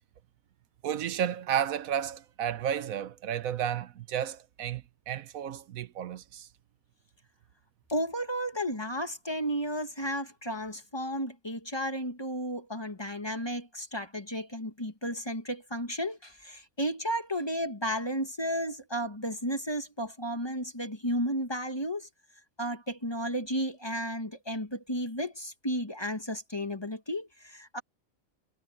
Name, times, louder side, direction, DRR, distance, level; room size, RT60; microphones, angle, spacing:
voice 1, 0.8-6.5, right 9 dB, 85° right, 1.2 m, -32 dB
voice 2, 7.9-22.1 22.6-27.8, equal, 20° left, 1.7 m, -33 dB
omnidirectional pair, 1.4 m